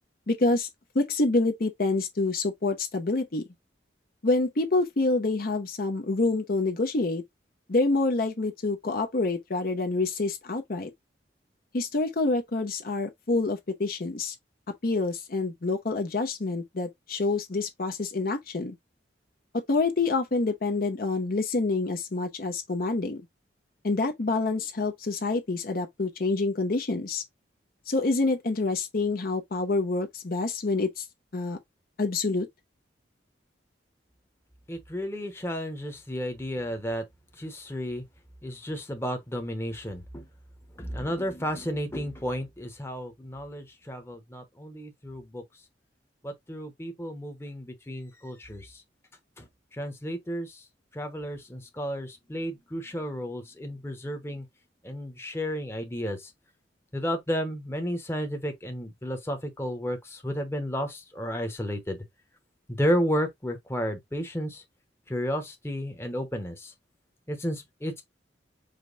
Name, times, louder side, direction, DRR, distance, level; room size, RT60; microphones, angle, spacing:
voice 1, 0.3-0.7 0.9-3.4 4.2-7.2 7.7-10.9 11.7-14.3 14.8-18.7 19.7-23.2 23.8-27.2 27.9-31.0 31.3-31.6 32.0-32.5, left 3 dB, 50° left, 0.7 m, -27 dB
voice 2, 34.7-37.0 37.4-38.0 38.4-40.3 40.8-45.4 46.2-48.7 49.4-49.5 49.8-50.6 50.9-54.4 54.8-56.2 56.9-62.0 62.7-64.6 65.1-66.7 67.3-68.0, equal, 15° left, 0.9 m, -32 dB
5.1 x 2.2 x 3.9 m
head